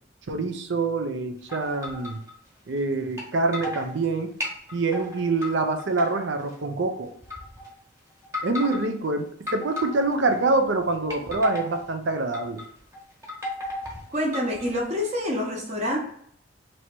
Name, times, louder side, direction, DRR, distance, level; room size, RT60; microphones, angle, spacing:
voice 1, 0.3-2.2 2.7-4.3 4.7-7.1 8.4-12.6, right 3 dB, 65° right, 7 dB, 0.5 m, -25 dB
sound 1, 1.5-2.3 3.2-3.3 3.5-3.9 4.4-5.5 5.8-6.5 7.2-7.7 8.2-8.9 9.5-10.3 10.9-11.8 12.3-12.6 12.9-14.8, left 2 dB, 10° right, 1.2 m, -34 dB
voice 2, 14.1-16.0, left 1 dB, 35° right, -2 dB, 0.9 m, -27 dB
3.1 x 3.0 x 4.5 m, 0.65 s
head